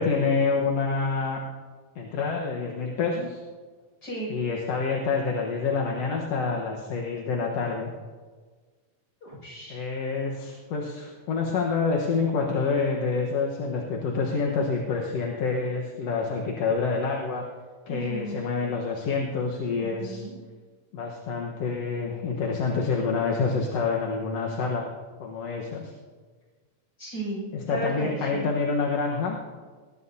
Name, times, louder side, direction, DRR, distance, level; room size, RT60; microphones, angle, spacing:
voice 1, 0.0-1.4 2.0-3.4 4.3-7.9 9.7-17.4 17.9-20.2 20.9-24.9 25.2-25.9 27.5-29.4, left 4 dB, 60° left, 0 dB, 2.1 m, -27 dB
voice 2, 4.0-4.3 9.2-9.9 17.9-18.4 19.8-20.3 27.0-28.5, right 2 dB, 30° left, -2 dB, 7.0 m, -35 dB
20.5 x 19.5 x 2.8 m, 1.5 s
omnidirectional pair, 3.8 m